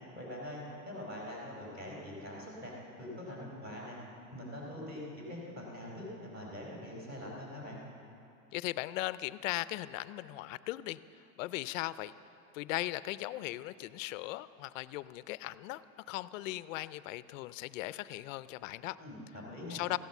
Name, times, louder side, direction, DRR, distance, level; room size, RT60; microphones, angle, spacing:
voice 1, 0.1-4.0 4.3-7.8 19.0-19.8, left 1 dB, 20° right, -3 dB, 4.4 m, -43 dB
voice 2, 8.5-11.0 11.4-12.1 12.5-15.8 16.1-19.0 19.7-20.0, left 17 dB, 60° left, 16 dB, 0.5 m, -38 dB
15.0 x 10.5 x 7.1 m, 2.7 s
supercardioid pair, 140°, 44 cm